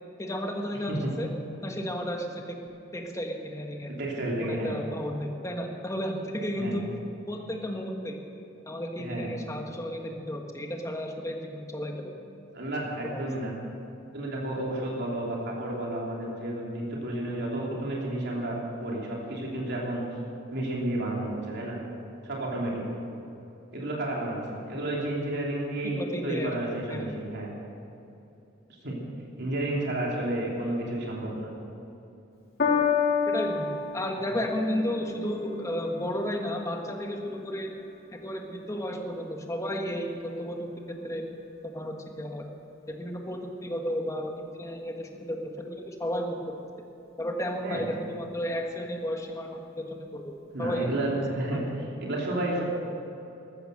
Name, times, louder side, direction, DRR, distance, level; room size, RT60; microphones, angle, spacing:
voice 1, 0.2-1.3 1.6-2.6 2.9-3.9 4.4-6.9 7.3-8.2 8.7-12.1 13.0-13.2 25.9-26.5 26.9-27.1 33.3-37.7 38.2-40.6 41.0-41.2 41.6-42.4 43.0-46.3 47.2-50.3 50.6-50.9, equal, 15° left, 2 dB, 1.5 m, -33 dB
voice 2, 4.0-4.7 6.5-6.8 9.0-9.3 12.5-13.5 14.1-20.0 20.5-21.7 22.2-22.8 23.7-27.5 28.8-29.0 29.4-31.5 47.6-47.9 50.5-52.6, right 1 dB, 55° right, -3 dB, 3.1 m, -31 dB
Piano, 32.6-39.2 40.0-40.1, left 6 dB, 50° left, 2.3 m, -31 dB
14.0 x 14.0 x 6.5 m, 2.9 s
head